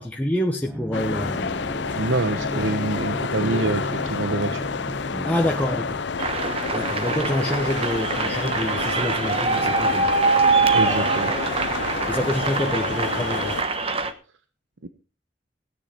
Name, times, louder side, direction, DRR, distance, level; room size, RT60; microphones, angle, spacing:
voice 1, 0.0-1.5 2.5-2.8 5.2-6.0 6.7-10.1 12.1-13.6, left 1 dB, 10° left, 0 dB, 1.1 m, -27 dB
sound 1, 0.7-6.0, right 1 dB, 10° right, 0.9 m, -34 dB
sound 2, 0.9-13.6, left 5 dB, 70° left, 0.6 m, -29 dB
voice 2, 1.9-4.7 10.7-11.3 14.8-14.9, right 3 dB, 90° right, 9 dB, 0.9 m, -26 dB
sound 3, 6.2-14.1, right 4 dB, 30° right, 1.1 m, -24 dB
16.5 x 9.8 x 4.3 m, 0.34 s
head